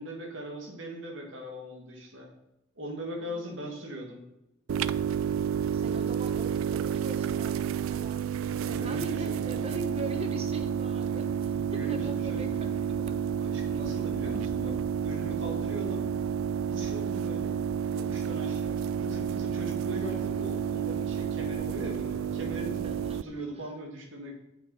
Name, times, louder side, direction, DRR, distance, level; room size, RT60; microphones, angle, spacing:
voice 1, 0.0-2.3 2.8-4.2 8.6-9.7 11.5-12.7 13.4-16.1 16.7-17.6 17.9-24.4, right 1 dB, 65° right, 1 dB, 2.1 m, -40 dB
sound 1, 4.7-23.2, right 8 dB, 90° right, 0.4 m, -30 dB
voice 2, 5.7-8.3 8.6-12.5 12.9-13.2 22.8-23.2, right 1 dB, 30° right, 6 dB, 1.0 m, -41 dB
8.8 x 7.4 x 4.1 m, 0.90 s
head